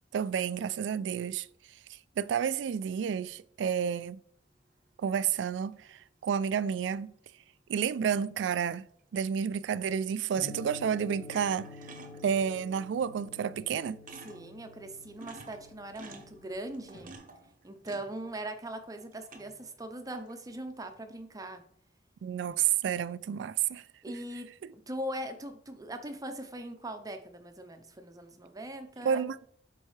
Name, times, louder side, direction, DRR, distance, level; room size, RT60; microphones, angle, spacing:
voice 1, 0.1-1.5 2.2-4.2 5.0-7.1 7.7-8.8 9.1-11.7 12.2-14.0 22.2-23.8 24.6-24.7 29.0-29.4, right 8 dB, 85° right, 0.3 m, -30 dB
sound 1, 5.1-5.2 9.1-9.4 10.4-10.8 11.1-12.6 13.4-13.5 13.7-13.8 14.1-14.6 15.0-18.6 19.0-19.7 20.1-20.6, right 3 dB, 50° right, 0.8 m, -51 dB
sound 2, 10.4-17.2, left 3 dB, 50° left, 1.4 m, -49 dB
voice 2, 14.2-17.1 17.6-21.6 24.0-29.3, right 1 dB, 20° right, 0.7 m, -40 dB
7.2 x 4.6 x 3.2 m
head